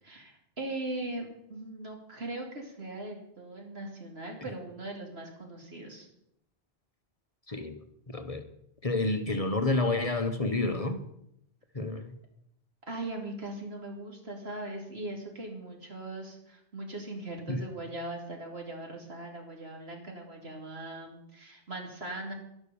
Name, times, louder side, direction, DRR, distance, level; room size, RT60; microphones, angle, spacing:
voice 1, 0.0-6.1 12.9-22.3, right 2 dB, 75° right, 1 dB, 3.1 m, -40 dB
voice 2, 7.5-7.8 8.1-8.4 8.8-11.0 11.7-12.1 17.5-17.7, left 2 dB, 35° left, 8 dB, 1.0 m, -29 dB
11.5 x 11.5 x 7.0 m, 0.76 s
omnidirectional pair, 1.1 m